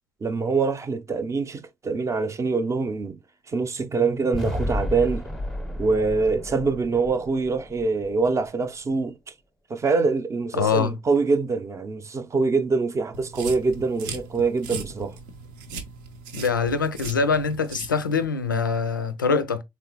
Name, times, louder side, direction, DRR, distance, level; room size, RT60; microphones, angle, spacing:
voice 1, 0.2-3.2 3.5-5.2 5.8-9.1 9.7-15.2, right 4 dB, 30° right, 0.6 m, -24 dB
sound 1, 4.3-8.5, left 1 dB, 5° left, 0.8 m, -32 dB
voice 2, 10.5-11.0 16.3-19.6, left 5 dB, 85° left, 0.4 m, -24 dB
sound 2, 13.1-18.3, right 4 dB, 65° right, 0.7 m, -38 dB
3.6 x 3.1 x 2.8 m
figure-of-eight pair, 50°, 10 cm